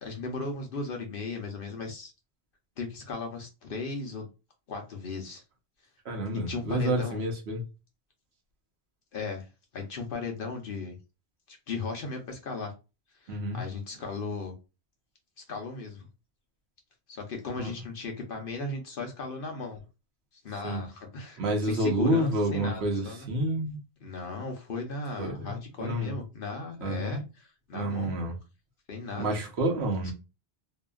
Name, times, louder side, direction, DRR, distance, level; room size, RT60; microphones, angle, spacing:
voice 1, 0.0-2.1 2.8-4.3 4.7-5.4 6.3-7.2 9.1-9.5 9.7-11.0 11.5-12.7 13.2-14.5 15.5-16.1 17.1-19.8 20.4-23.3 24.0-28.1 28.9-29.4 30.0-30.1, left 3 dB, 60° left, 0.8 m, -36 dB
voice 2, 6.0-7.6 13.3-13.6 17.6-17.7 20.6-20.8 21.4-23.8 25.2-25.3 25.8-26.1 26.8-27.2 27.7-28.3 29.2-30.1, right 1 dB, 75° right, 1.0 m, -29 dB
2.8 x 2.4 x 2.2 m
omnidirectional pair, 1.1 m